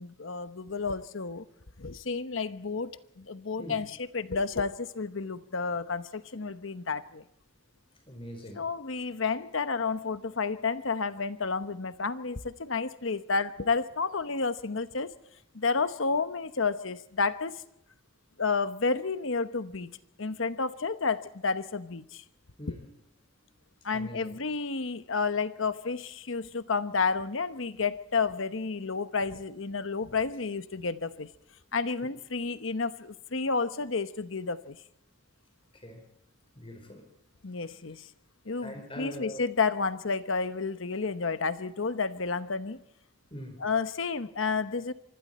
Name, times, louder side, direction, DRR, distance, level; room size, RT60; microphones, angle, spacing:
voice 1, 0.0-1.5 1.8-7.2 8.6-15.1 15.5-17.6 18.4-22.2 22.7-22.8 23.8-31.3 31.7-34.8 37.4-38.1 38.5-42.8 43.6-44.9, left 4 dB, 75° left, 1.0 m, -31 dB
voice 2, 8.1-8.7 22.6-22.9 23.9-24.4 32.0-32.1 35.7-36.0 36.6-37.1 38.6-39.4 43.3-43.6, left 1 dB, 25° left, 4.1 m, -43 dB
25.0 x 25.0 x 4.3 m
head